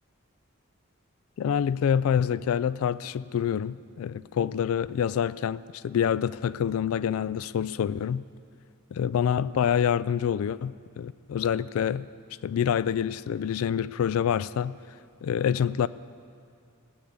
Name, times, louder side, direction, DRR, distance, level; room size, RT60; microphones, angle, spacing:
voice 1, 1.4-8.2 8.9-12.1 12.4-14.8 15.2-15.9, left 8 dB, 75° left, 0.3 m, -26 dB
16.5 x 8.7 x 8.3 m
head